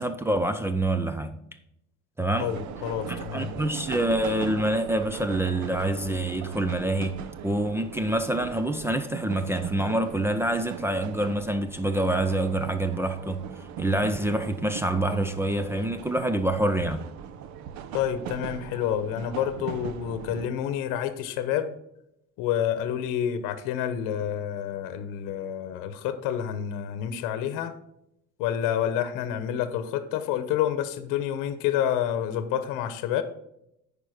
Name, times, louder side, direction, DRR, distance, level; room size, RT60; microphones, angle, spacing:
voice 1, 0.0-1.4 2.2-2.5 3.1-13.4 13.8-17.1, right 1 dB, 10° right, 0.4 m, -26 dB
voice 2, 2.4-3.6 17.9-21.7 22.4-27.7 28.4-33.2, left 10 dB, 75° left, 0.9 m, -28 dB
sound 1, 2.4-20.5, right 8 dB, 60° right, 0.7 m, -40 dB
9.0 x 5.1 x 4.9 m
cardioid pair, 140°, 32 cm